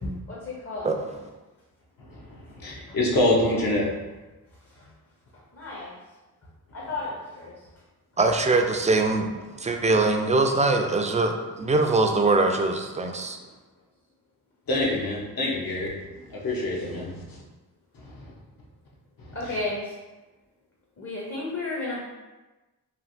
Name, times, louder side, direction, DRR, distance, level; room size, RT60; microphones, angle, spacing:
voice 1, 0.0-0.9 2.9-3.0 5.5-5.9 6.7-7.5 13.1-13.3 19.3-19.8 21.0-22.0, left 2 dB, 35° left, -4 dB, 0.8 m, -33 dB
voice 2, 2.0-3.8 14.7-15.9 16.3-17.4 18.0-18.1 19.2-19.6, left 1 dB, 60° left, -3 dB, 1.0 m, -26 dB
voice 3, 8.2-9.3 9.6-13.4, right 3 dB, 20° right, 4 dB, 0.3 m, -22 dB
3.2 x 2.4 x 2.6 m, 1.1 s
cardioid pair, 45°, 39 cm